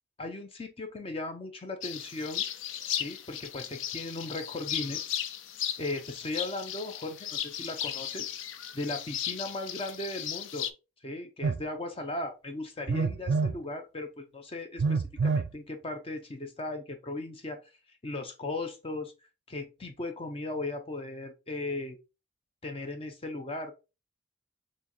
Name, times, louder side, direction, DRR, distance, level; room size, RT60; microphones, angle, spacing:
voice 1, 0.2-2.4 3.0-5.1 5.8-8.3 8.7-10.7 11.0-17.6 18.0-19.1 19.5-22.0 22.6-23.7, left 2 dB, 30° left, 6 dB, 0.5 m, -37 dB
sound 1, 1.8-10.7, left 10 dB, 85° left, 0.4 m, -36 dB
Telephone, 11.4-11.6 12.9-13.6 14.8-15.5, right 4 dB, 60° right, 0.3 m, -27 dB
4.3 x 3.0 x 3.0 m, 0.29 s
head